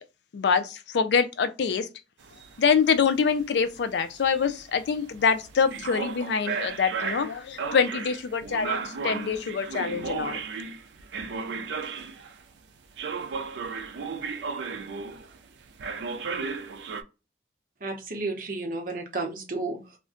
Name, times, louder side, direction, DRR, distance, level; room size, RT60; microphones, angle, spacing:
voice 1, 0.3-1.9 2.6-10.4, left 6 dB, 70° left, 0.4 m, -25 dB
sound 1, 2.2-12.4 13.0-15.4 15.8-17.0, right 5 dB, 75° right, 0.4 m, -35 dB
voice 2, 17.8-20.0, right 3 dB, 50° right, 0.7 m, -32 dB
2.4 x 2.1 x 3.6 m
head